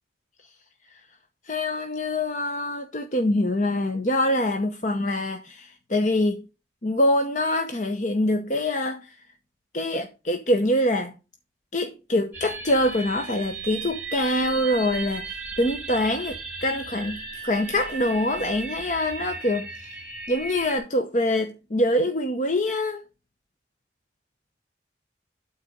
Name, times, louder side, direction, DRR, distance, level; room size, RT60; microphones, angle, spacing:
voice 1, 1.4-6.4 6.8-9.2 9.7-11.1 11.7-20.0 20.3-23.0, left 1 dB, 45° left, 0.9 m, -25 dB
sound 1, 12.3-20.8, right 4 dB, 10° right, 2.1 m, -36 dB
12.5 x 4.1 x 5.0 m
head